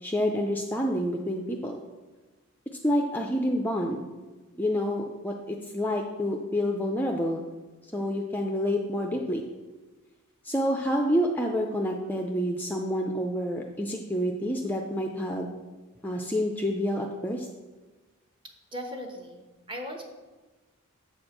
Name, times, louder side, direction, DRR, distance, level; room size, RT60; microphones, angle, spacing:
voice 1, 0.0-1.8 2.8-4.1 4.6-7.4 7.9-9.4 10.4-15.5 16.0-17.5, equal, 10° left, 2 dB, 0.4 m, -28 dB
voice 2, 18.7-20.0, equal, 25° right, 2 dB, 1.1 m, -38 dB
8.1 x 4.4 x 6.5 m, 1.2 s
head